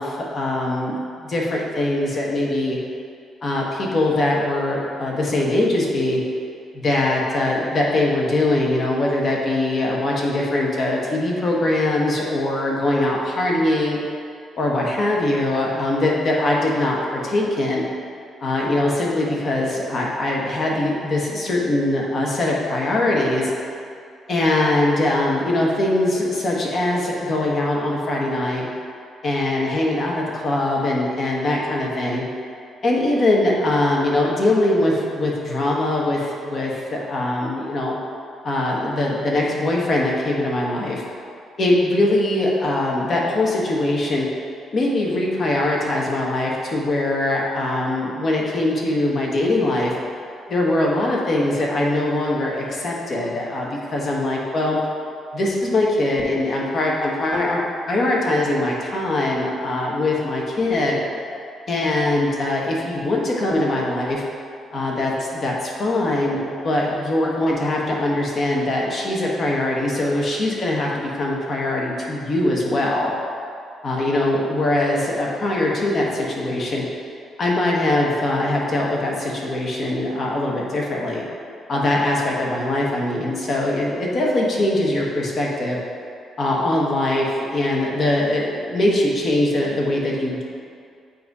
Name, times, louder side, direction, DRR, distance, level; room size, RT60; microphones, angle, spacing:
voice 1, 0.0-2.8 3.4-6.2 6.7-14.0 14.6-17.8 18.4-23.5 24.3-28.7 29.2-32.2 32.8-38.0 38.4-41.0 41.6-44.3 44.7-49.9 50.5-54.8 55.3-61.0 61.7-64.2 64.7-73.1 73.8-76.8 77.4-81.2 81.7-85.8 86.4-90.4, left 1 dB, 50° left, -2 dB, 1.1 m, -22 dB
7.6 x 2.7 x 4.7 m, 2.4 s
cardioid pair, 90°, 0 cm